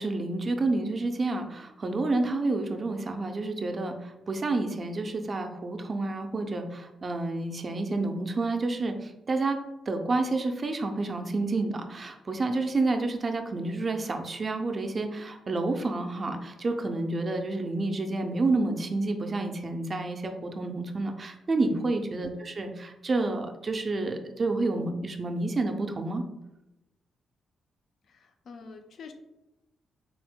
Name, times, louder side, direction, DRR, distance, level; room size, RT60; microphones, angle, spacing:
voice 1, 0.0-9.6 9.9-26.2, right 2 dB, 30° right, 5 dB, 0.4 m, -29 dB
voice 2, 28.1-29.1, left 4 dB, 55° left, 6 dB, 0.4 m, -44 dB
3.7 x 2.0 x 4.3 m, 0.94 s
cardioid pair, 150°, 0 cm